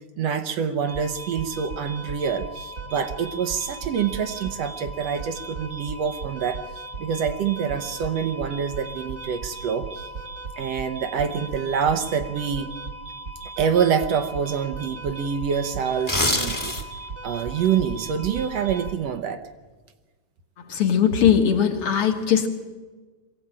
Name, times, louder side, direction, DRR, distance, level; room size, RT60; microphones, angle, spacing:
voice 1, 0.2-6.6 7.0-9.9 10.6-12.7 13.6-16.7 17.2-19.4, right 7 dB, 70° right, 8 dB, 1.9 m, -26 dB
sound 1, 0.9-18.9, right 3 dB, 40° right, 1.7 m, -37 dB
sound 2, 15.9-17.1 17.5-17.7, left 1 dB, 10° left, 1.2 m, -24 dB
voice 2, 20.7-22.5, left 8 dB, 55° left, 4 dB, 2.2 m, -20 dB
22.5 x 16.0 x 8.8 m, 1.3 s
omnidirectional pair, 3.3 m